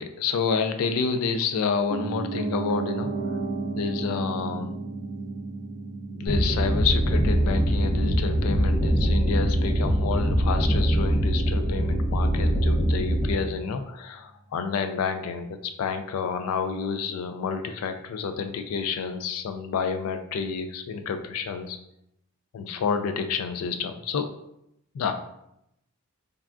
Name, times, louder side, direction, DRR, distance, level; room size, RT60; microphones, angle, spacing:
voice 1, 0.0-3.1 3.7-4.8 6.1-21.8 22.5-24.3 24.9-25.1, left 6 dB, 85° left, 8 dB, 0.3 m, -29 dB
Piano, 1.9-11.9 12.2-12.3, right 3 dB, 45° right, 0.4 m, -35 dB
sound 1, 6.3-13.3, equal, 25° left, 0.7 m, -23 dB
3.5 x 2.2 x 2.4 m, 0.80 s
head